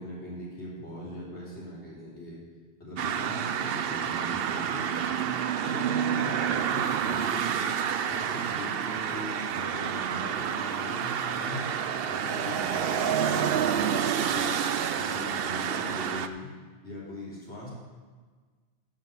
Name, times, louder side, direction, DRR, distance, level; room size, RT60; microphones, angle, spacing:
voice 1, 0.0-2.4 2.8-5.1 5.6-7.7 8.1-11.7 12.1-14.0 14.3-14.6 14.9-16.5 16.8-17.7, left 1 dB, 70° left, -7 dB, 3.8 m, -40 dB
sound 1, 3.0-16.3, right 8 dB, 60° right, 0.7 m, -29 dB
8.9 x 7.7 x 7.2 m, 1.5 s
omnidirectional pair, 1.2 m